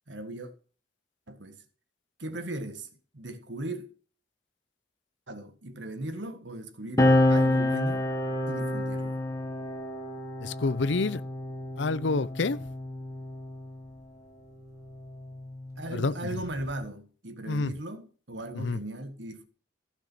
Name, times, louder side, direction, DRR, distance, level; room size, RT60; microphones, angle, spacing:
voice 1, 0.1-0.5 1.3-1.6 2.2-2.9 3.1-3.9 5.3-8.1 8.5-9.2 15.8-19.5, right 1 dB, 70° right, 1.7 m, -37 dB
sound 1, 7.0-13.9 14.9-16.7, left 1 dB, 15° left, 1.2 m, -28 dB
voice 2, 10.4-11.2 11.8-12.6 15.9-16.4 17.5-17.7 18.6-18.8, left 3 dB, 70° left, 0.6 m, -28 dB
15.0 x 6.2 x 6.2 m
head